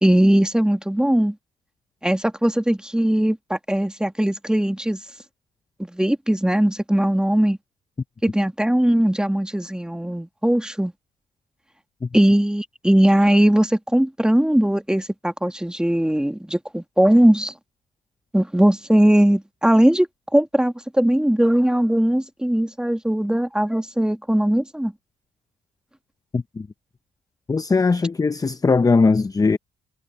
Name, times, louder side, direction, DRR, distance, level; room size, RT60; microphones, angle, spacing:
voice 1, 0.0-1.4 2.0-5.0 5.8-7.6 8.2-10.9 12.1-17.5 18.3-24.9, right 1 dB, 5° right, 1.8 m, -19 dB
voice 2, 26.3-26.7 27.5-29.6, left 4 dB, 20° left, 0.5 m, -19 dB
cardioid pair, 90°, 20 cm